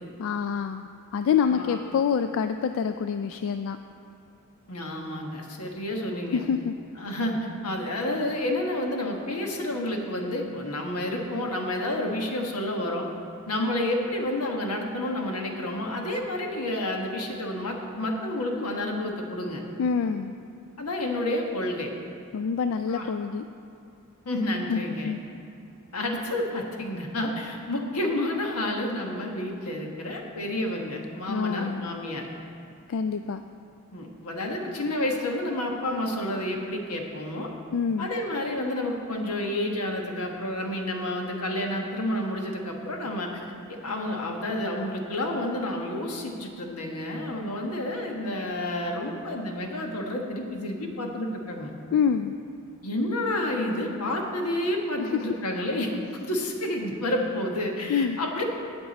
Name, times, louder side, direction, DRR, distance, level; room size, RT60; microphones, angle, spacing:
voice 1, 0.2-3.8 6.3-6.7 19.8-20.3 22.3-23.4 24.7-25.2 31.3-31.9 32.9-33.4 37.7-38.1 51.9-52.3 55.0-55.4 57.9-58.2, left 6 dB, 60° left, 8 dB, 0.3 m, -26 dB
voice 2, 1.2-1.8 4.7-6.4 7.0-7.3 7.6-13.1 13.5-19.6 20.8-21.9 22.9-23.1 24.2-25.1 25.9-32.3 33.9-37.5 38.0-51.7 52.8-58.4, left 1 dB, 85° left, 1 dB, 1.4 m, -30 dB
17.5 x 6.0 x 4.1 m, 2.6 s
head